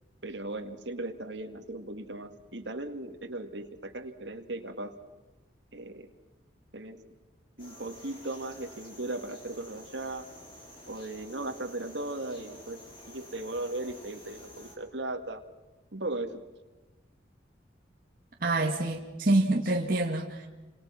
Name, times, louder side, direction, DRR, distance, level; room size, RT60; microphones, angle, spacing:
voice 1, 0.2-4.9 5.7-6.1 6.7-7.0 7.6-10.3 10.9-15.4 15.9-16.4, right 2 dB, 70° right, 6 dB, 2.3 m, -37 dB
sound 1, 7.6-14.8, left 1 dB, 30° left, 6.1 m, -50 dB
voice 2, 18.4-20.5, right 2 dB, 50° right, 0 dB, 2.0 m, -26 dB
30.0 x 26.5 x 5.9 m, 1.2 s
head